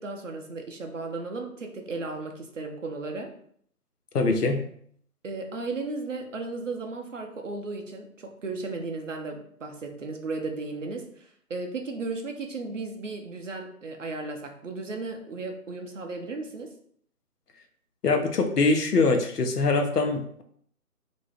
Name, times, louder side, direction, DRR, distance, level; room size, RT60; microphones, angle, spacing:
voice 1, 0.0-3.3 5.2-16.7, right 3 dB, 55° right, 3 dB, 0.6 m, -35 dB
voice 2, 4.1-4.6 18.0-20.4, left 3 dB, 80° left, 5 dB, 0.7 m, -23 dB
2.5 x 2.0 x 3.3 m, 0.63 s
figure-of-eight pair, 155°, 46 cm